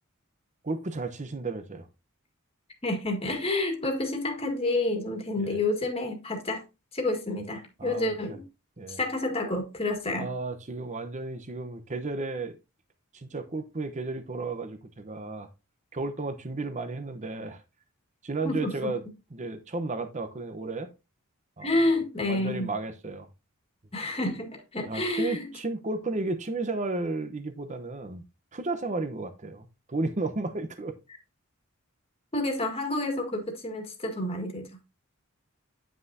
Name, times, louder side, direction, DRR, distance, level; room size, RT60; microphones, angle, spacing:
voice 1, 0.6-1.9 5.4-5.6 7.8-8.4 8.8-9.0 10.2-12.5 13.1-15.5 15.9-17.6 18.2-19.0 19.3-20.9 21.6-21.8 22.3-23.3 24.9-28.2 28.5-31.0, right 3 dB, 35° right, 0.8 m, -33 dB
voice 2, 2.8-6.6 6.9-8.4 8.9-10.3 18.4-18.9 21.6-22.7 23.9-25.5 32.3-34.7, left 2 dB, 30° left, 1.8 m, -29 dB
9.4 x 6.2 x 2.7 m
head